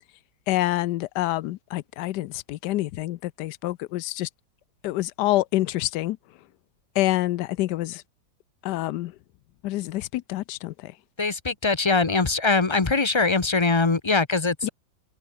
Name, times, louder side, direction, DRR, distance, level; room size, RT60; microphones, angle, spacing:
voice 1, 0.5-4.3 4.8-6.2 7.0-8.0 8.6-9.1 9.6-10.9 14.6-14.7, left 16 dB, 75° left, 1.1 m, -27 dB
voice 2, 11.2-14.7, left 3 dB, 25° left, 0.7 m, -22 dB
omnidirectional pair, 2.0 m